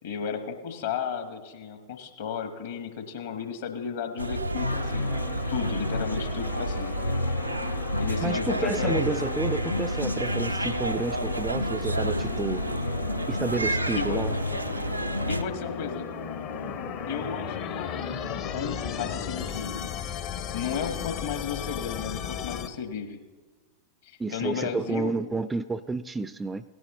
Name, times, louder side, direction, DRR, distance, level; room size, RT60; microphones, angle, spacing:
voice 1, 0.0-5.2 5.5-7.0 8.0-9.0 13.9-14.5 15.3-16.1 17.1-19.7 20.5-23.2 24.0-25.1, left 7 dB, 60° left, 7 dB, 1.2 m, -34 dB
sound 1, 4.2-15.4, equal, 85° right, 0.4 m, -29 dB
sound 2, 4.6-22.7, left 9 dB, 40° left, 0.7 m, -37 dB
voice 2, 8.2-12.6 13.3-14.3 24.2-26.6, right 3 dB, 10° right, 14 dB, 0.3 m, -30 dB
sound 3, 10.0-19.9, left 2 dB, 80° left, 1.0 m, -40 dB
17.0 x 11.0 x 3.0 m, 1.3 s
figure-of-eight pair, 90°, 0 cm